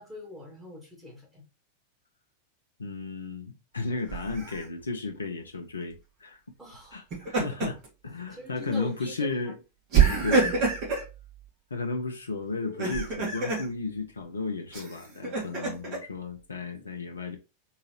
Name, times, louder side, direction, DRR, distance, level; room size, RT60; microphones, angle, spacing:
voice 1, 0.0-1.4 6.6-7.0 7.4-7.7 8.3-9.3, left 1 dB, 10° right, 1.8 m, -44 dB
voice 2, 2.8-6.4 6.9-9.5 10.2-10.7 11.7-17.4, left 3 dB, 75° left, 0.5 m, -34 dB
Laughter, 4.1-4.6 6.9-7.9 8.3-8.5 9.9-11.1 12.6-13.7 14.7-16.0, right 5 dB, 40° right, 1.8 m, -26 dB
3.8 x 2.8 x 2.9 m
figure-of-eight pair, 90°, 0 cm